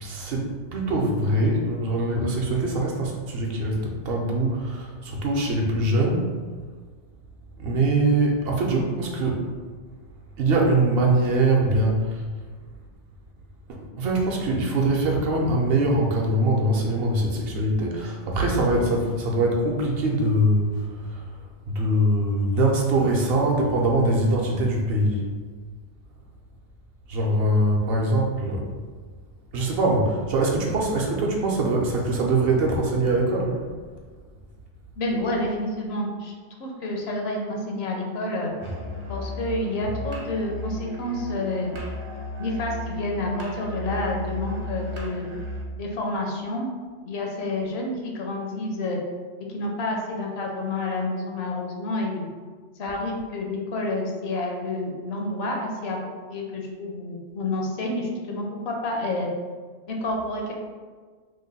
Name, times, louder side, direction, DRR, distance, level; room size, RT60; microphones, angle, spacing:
voice 1, 0.0-6.2 7.6-9.5 10.4-12.1 13.7-20.7 21.1-21.2 21.7-25.2 27.1-28.6 29.5-33.6, right 2 dB, 65° right, -1 dB, 0.8 m, -23 dB
voice 2, 35.0-36.3 36.6-38.5 39.1-41.7 42.4-45.3 45.8-46.7 47.0-49.0 49.5-52.3 52.8-56.0 56.3-59.3 59.9-60.5, left 2 dB, 70° left, 0 dB, 0.8 m, -29 dB
Musical instrument, 38.6-45.7, left 1 dB, 35° right, 0.5 m, -34 dB
3.0 x 2.2 x 3.9 m, 1.5 s
omnidirectional pair, 1.1 m